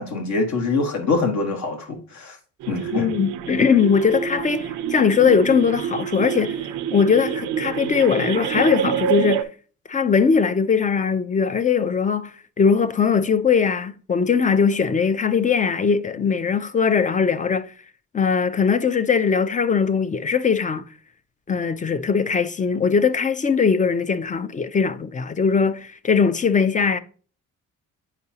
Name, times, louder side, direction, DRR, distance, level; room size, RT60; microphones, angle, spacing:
voice 1, 0.0-2.4 2.7-3.1, left 3 dB, 65° left, 1.5 m, -24 dB
sound 1, 2.6-9.4, right 9 dB, 80° right, 0.6 m, -27 dB
voice 2, 2.9-6.6 6.9-9.5 9.9-17.7 18.1-20.8 21.5-27.0, left 6 dB, 25° left, 0.5 m, -20 dB
8.1 x 4.7 x 2.8 m
cardioid pair, 90°, 30 cm